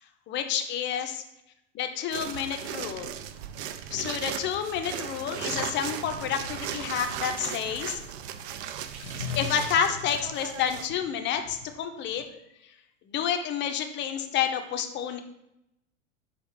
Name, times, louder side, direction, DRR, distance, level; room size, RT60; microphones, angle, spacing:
voice 1, 0.3-1.2 1.7-3.2 3.9-8.0 8.9-12.2 13.1-15.2, left 8 dB, 30° left, 6 dB, 0.5 m, -29 dB
sound 1, 2.1-10.9, right 9 dB, 55° right, 0.5 m, -37 dB
sound 2, 3.5-4.2 5.4-8.1 9.0-12.2, left 6 dB, 85° left, 0.6 m, -41 dB
6.2 x 2.5 x 3.4 m, 0.83 s
hypercardioid pair, 90°, 39 cm